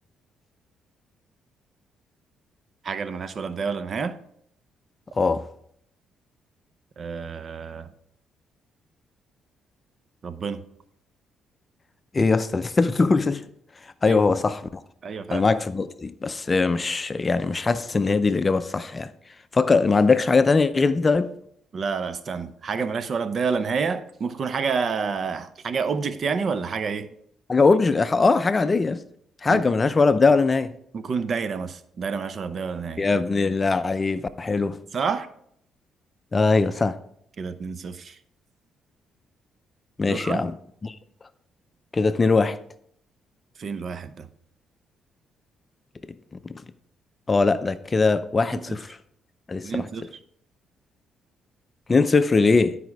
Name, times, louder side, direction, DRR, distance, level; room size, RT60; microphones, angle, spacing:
voice 1, 2.8-4.2 7.0-7.9 10.2-10.6 14.0-14.2 15.0-15.5 21.7-27.1 29.5-29.6 30.9-33.0 34.9-35.3 37.4-38.2 40.0-40.4 43.6-44.3 48.5-48.8 49.6-50.1, right 5 dB, 50° right, 0.7 m, -29 dB
voice 2, 12.1-13.4 14.0-14.8 15.3-19.1 19.5-21.3 27.5-29.0 29.4-30.7 33.0-34.8 36.3-37.0 40.0-40.5 40.8-40.9 41.9-42.6 47.3-49.0 49.5-49.8 51.9-52.8, left 4 dB, 30° left, 0.5 m, -21 dB
11.5 x 5.0 x 4.7 m
cardioid pair, 90°, 0 cm